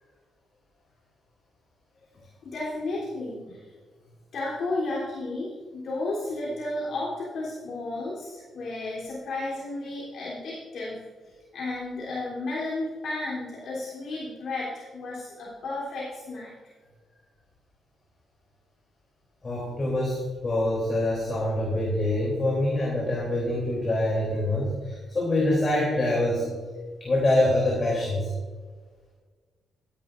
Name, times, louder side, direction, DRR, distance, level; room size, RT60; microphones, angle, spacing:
voice 1, 2.4-3.7 4.3-16.5, left 2 dB, 60° left, -7 dB, 3.4 m, -33 dB
voice 2, 19.4-26.4 27.0-28.3, left 1 dB, 30° left, -4 dB, 3.2 m, -25 dB
16.0 x 11.0 x 2.6 m, 1.5 s
cardioid pair, 130°, 0 cm